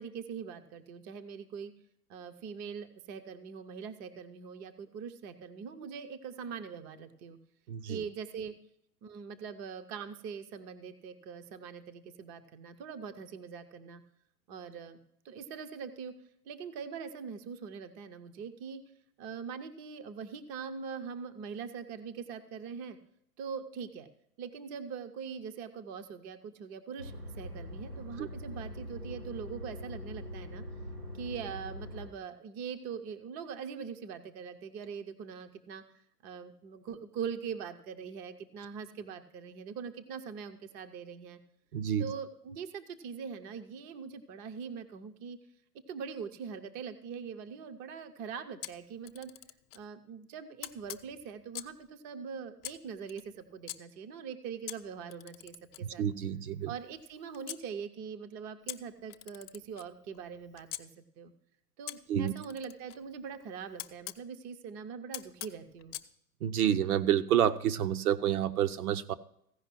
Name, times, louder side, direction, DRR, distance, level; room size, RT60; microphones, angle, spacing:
voice 1, 0.0-1.7 2.1-7.4 7.9-8.5 9.0-14.0 14.5-15.0 15.2-16.1 16.5-18.8 19.2-23.0 23.4-24.1 24.4-30.6 31.1-35.8 36.2-41.4 42.0-45.4 45.9-49.3 49.7-56.1 56.7-61.3 61.8-66.0, right 6 dB, 20° right, 9 dB, 0.5 m, -42 dB
voice 2, 7.7-8.0 28.2-28.3 41.7-42.1 55.8-56.7 62.1-62.3 66.4-69.1, right 10 dB, 70° right, 10 dB, 0.9 m, -29 dB
sound 1, 27.0-32.1, left 1 dB, 90° right, 4.4 m, -43 dB
Camera, 48.6-49.9 50.6-51.8 52.6-53.8 54.7-57.6 58.7-60.8 61.9-64.2 65.1-66.1, left 15 dB, 40° left, 0.7 m, -45 dB
15.5 x 5.2 x 6.0 m, 0.72 s
hypercardioid pair, 120°, 46 cm